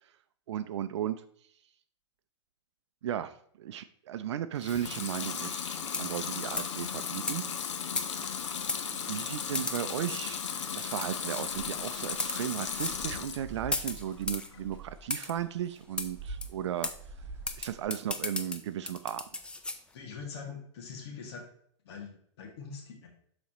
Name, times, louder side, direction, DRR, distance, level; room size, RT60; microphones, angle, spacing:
voice 1, 0.5-1.2 3.0-7.5 8.9-16.9 17.6-19.2, right 10 dB, 65° right, 12 dB, 0.5 m, -35 dB
Water tap faucet / Sink (filling or washing) / Liquid, 4.6-13.5 13.9-14.6, left 7 dB, 75° left, 1.0 m, -36 dB
sound 1, 5.9-6.2 6.6-6.8 7.3-7.4 8.0-8.3 8.7-8.8 9.5-10.2 11.0-11.4 12.1-12.4 12.7-13.0 13.7-14.5 15.1-15.3 16.0-16.1 16.4-16.5 16.8-17.0 17.5-19.8, left 3 dB, 5° left, 0.5 m, -35 dB
sound 2, 11.5-17.8, right 3 dB, 15° right, 1.5 m, -47 dB
voice 2, 19.9-21.4 21.8-23.1, left 5 dB, 60° left, 1 dB, 2.0 m, -43 dB
11.5 x 4.1 x 3.0 m, 0.65 s
hypercardioid pair, 130°, 16 cm